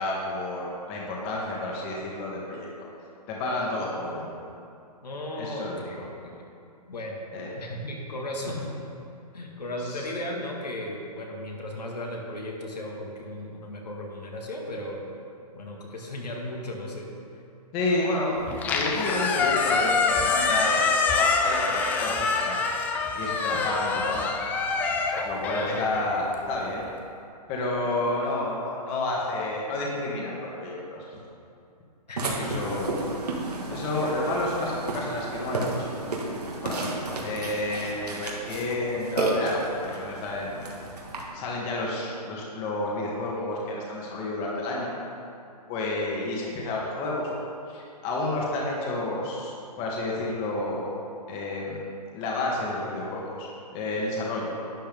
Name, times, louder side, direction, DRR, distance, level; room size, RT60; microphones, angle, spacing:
voice 1, 0.0-2.9 3.3-4.3 5.4-5.9 7.3-7.5 8.4-8.5 9.8-10.0 17.7-22.6 23.1-24.4 25.2-26.9 27.5-31.2 32.2-32.9 33.7-35.9 36.6-40.6 41.3-44.9 45.7-47.3 47.7-51.0 51.3-51.8 52.1-54.5, left 2 dB, 25° left, -3 dB, 1.7 m, -30 dB
voice 2, 5.0-6.5 6.9-7.2 7.5-8.7 9.3-15.0 15.5-17.1 25.5-26.0 27.8-27.9 32.1-32.5 37.1-37.3, left 1 dB, 80° left, -1 dB, 2.0 m, -36 dB
Squeak, 18.5-26.7, left 4 dB, 10° left, 0.3 m, -26 dB
Burping eructation, 32.2-41.2, right 2 dB, 70° right, 1.9 m, -32 dB
11.5 x 8.8 x 3.6 m, 2.6 s
hypercardioid pair, 135°, 21 cm